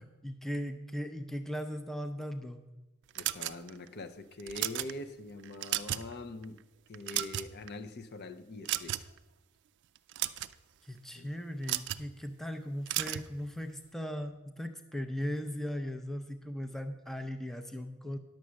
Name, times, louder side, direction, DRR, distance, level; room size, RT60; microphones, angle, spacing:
voice 1, 0.0-2.6 10.8-18.2, equal, ahead, 0.5 m, -38 dB
voice 2, 3.2-6.6 6.9-9.1 11.1-11.3, left 2 dB, 50° left, 0.6 m, -43 dB
sound 1, 3.2-3.9 4.4-4.9 5.4-6.1 6.4-6.6 6.9-7.7 8.7-9.2 10.0-10.5 11.6-12.1 12.9-13.3, right 14 dB, 55° right, 0.4 m, -34 dB
10.5 x 7.0 x 6.3 m
head